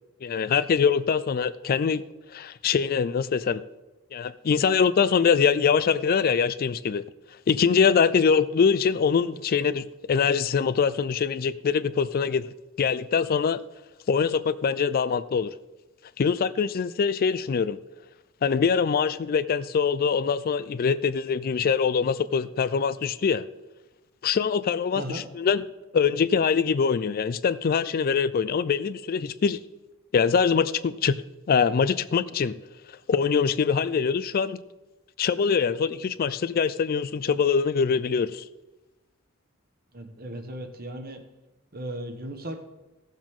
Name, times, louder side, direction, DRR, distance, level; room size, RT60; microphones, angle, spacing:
voice 1, 0.2-2.0 2.3-3.6 4.1-7.0 7.5-12.5 12.8-13.6 14.1-15.5 16.2-17.8 18.4-23.4 24.2-25.6 25.9-29.6 30.1-31.1 31.5-32.6 33.1-34.6 35.2-38.4, left 6 dB, 45° left, 0.4 m, -23 dB
voice 2, 39.9-41.2 41.7-42.6, right 1 dB, 45° right, 1.3 m, -36 dB
16.0 x 7.3 x 3.7 m
head